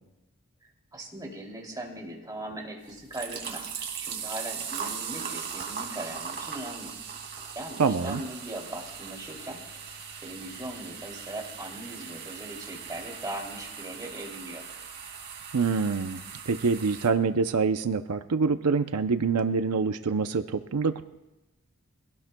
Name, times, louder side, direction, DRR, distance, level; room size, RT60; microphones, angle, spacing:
voice 1, 0.9-6.9 7.5-9.6 10.2-14.6, right 1 dB, 15° right, -1 dB, 2.8 m, -39 dB
sound 1, 2.8-17.1, right 7 dB, 50° right, 2.4 m, -39 dB
voice 2, 7.8-8.2 15.5-16.2 16.5-21.0, right 5 dB, 90° right, 9 dB, 0.6 m, -25 dB
24.0 x 17.5 x 2.3 m, 1.0 s
head